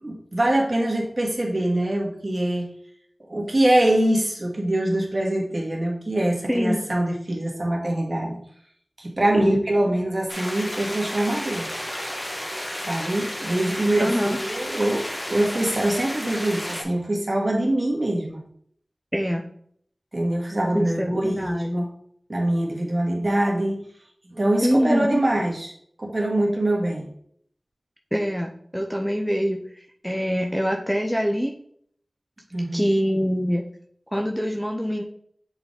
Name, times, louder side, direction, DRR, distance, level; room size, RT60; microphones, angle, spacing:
voice 1, 0.0-2.7 3.3-8.4 9.0-11.7 12.9-18.4 20.1-21.9 22.3-23.8 24.3-25.7 26.0-27.1 32.5-32.9, right 1 dB, 40° right, -2 dB, 1.9 m, -24 dB
voice 2, 6.5-6.8 9.4-9.6 9.9-10.0 14.0-14.4 19.1-19.5 20.7-21.9 24.6-25.2 28.1-29.6 30.0-31.5 32.7-33.7 34.1-35.0, equal, 5° left, 2 dB, 0.6 m, -24 dB
sound 1, 10.3-16.8, equal, 20° left, 1.5 m, -32 dB
7.1 x 4.0 x 3.9 m, 0.64 s
wide cardioid pair, 60°, 0 cm